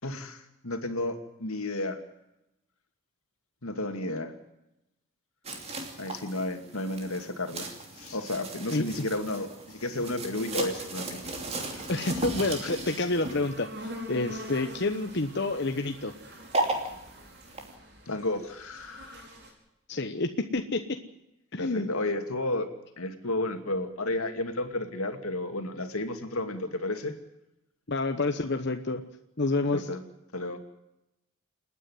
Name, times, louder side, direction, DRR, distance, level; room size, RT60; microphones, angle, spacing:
voice 1, 0.0-2.0 3.6-4.3 6.0-7.7 7.9-11.2 11.7-11.9 12.6-12.7 18.1-19.3 21.6-22.7 23.0-27.1 29.7-30.0 30.3-30.6, left 2 dB, 85° left, 6 dB, 2.5 m, -32 dB
sound 1, 5.4-17.7, right 2 dB, 30° right, 2.9 m, -37 dB
sound 2, 10.7-19.5, equal, 55° right, 5.1 m, -46 dB
voice 2, 11.9-16.1 19.9-21.0 21.5-21.9 27.9-29.0 29.4-29.9, left 2 dB, 50° left, 6 dB, 1.1 m, -29 dB
28.5 x 9.9 x 9.6 m, 0.89 s
head